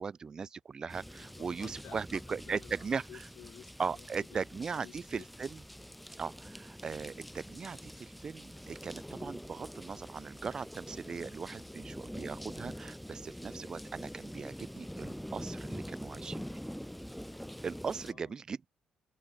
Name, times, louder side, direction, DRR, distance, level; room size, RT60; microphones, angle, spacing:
voice 1, 0.0-3.0 3.8-5.6 6.2-16.4 17.6-18.7, right 5 dB, 30° right, 0.6 m, -39 dB
sound 1, 0.9-18.1, equal, ahead, 0.9 m, -45 dB
voice 2, 1.0-4.4 4.7-5.3 18.0-18.4, left 11 dB, 60° left, 2.2 m, -54 dB
open air
cardioid pair, 145°, 2 cm